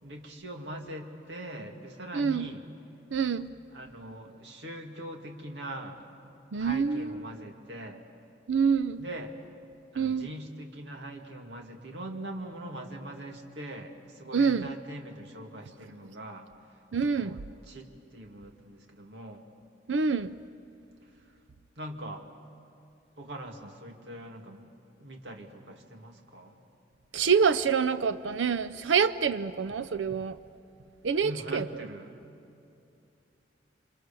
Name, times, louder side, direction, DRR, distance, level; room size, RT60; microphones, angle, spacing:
voice 1, 0.0-2.6 3.7-6.0 6.5-8.0 9.0-9.3 9.9-16.5 17.1-19.4 21.8-22.2 23.2-24.7 25.0-26.6 31.2-32.1, right 1 dB, 70° right, 2.3 m, -42 dB
voice 2, 2.1-2.5 3.1-3.5 6.5-7.2 8.5-9.0 10.0-10.3 14.3-14.7 16.9-17.4 19.9-20.3 27.1-30.4 31.0-31.6, right 6 dB, 85° right, 0.5 m, -26 dB
28.0 x 25.5 x 6.9 m
head